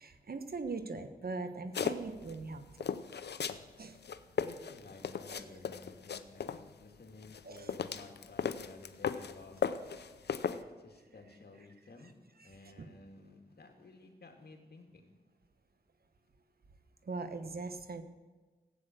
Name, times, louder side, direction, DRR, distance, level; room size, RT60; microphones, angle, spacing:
voice 1, 0.0-2.6 3.8-4.0 5.3-5.6 7.4-7.8 12.4-12.5 12.8-12.9 17.0-18.0, right 3 dB, 65° right, 9 dB, 1.2 m, -41 dB
sound 1, 1.7-2.4 2.8-3.6 4.0-6.6 7.2-9.3 9.6-10.6, left 7 dB, 90° left, 0.6 m, -36 dB
voice 2, 4.4-9.6 10.5-12.1 12.4-15.1, left 3 dB, 75° left, 3 dB, 2.2 m, -54 dB
15.0 x 8.7 x 7.7 m, 1.3 s
cardioid pair, 50°, 17 cm